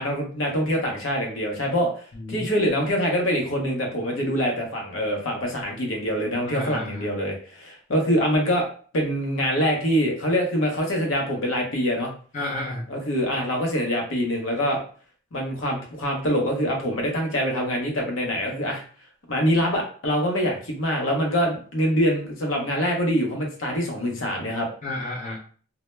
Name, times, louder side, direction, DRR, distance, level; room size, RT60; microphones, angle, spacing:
voice 1, 0.0-8.7 8.9-12.1 12.9-14.8 15.3-18.8 19.3-24.7, equal, 80° left, 1 dB, 0.7 m, -24 dB
voice 2, 6.4-7.1 12.3-12.8 24.8-25.4, left 2 dB, 35° left, -2 dB, 0.5 m, -31 dB
2.1 x 2.0 x 2.9 m, 0.42 s
head